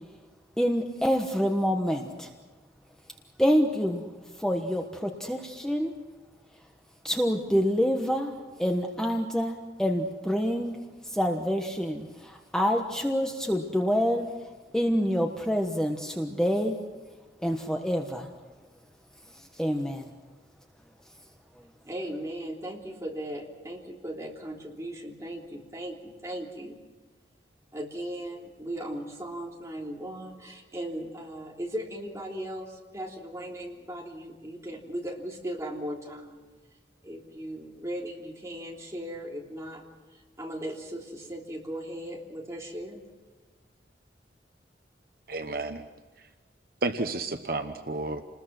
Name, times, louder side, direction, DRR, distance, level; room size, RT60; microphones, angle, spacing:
voice 1, 0.6-2.3 3.4-4.0 4.4-5.9 7.0-8.3 8.6-10.8 11.0-14.3 14.7-16.8 17.4-18.3 19.4-20.1, equal, 5° left, 2 dB, 1.2 m, -27 dB
voice 2, 21.8-26.8 27.7-36.4 37.0-39.8 40.1-43.0, right 1 dB, 15° right, -1 dB, 3.3 m, -37 dB
voice 3, 45.3-45.8 46.8-48.2, right 2 dB, 55° right, 7 dB, 1.0 m, -31 dB
28.5 x 21.0 x 6.1 m, 1.3 s
head